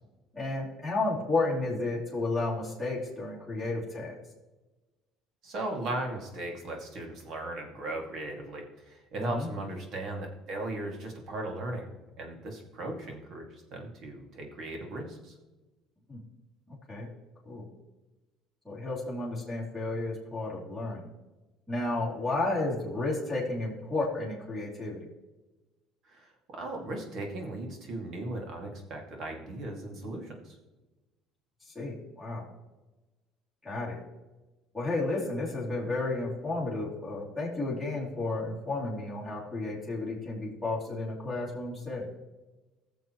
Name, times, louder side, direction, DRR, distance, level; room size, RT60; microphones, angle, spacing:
voice 1, 0.3-4.1 9.2-9.5 16.1-16.2 16.9-17.1 17.4-17.7 18.6-21.0 21.7-25.0 31.7-32.5 33.6-34.0 34.7-42.0, left 2 dB, ahead, -7 dB, 3.1 m, -32 dB
voice 2, 5.4-15.3 26.1-30.6, right 2 dB, 50° right, 2 dB, 2.2 m, -37 dB
18.0 x 7.0 x 3.1 m, 1.1 s
cardioid pair, 135°, 0 cm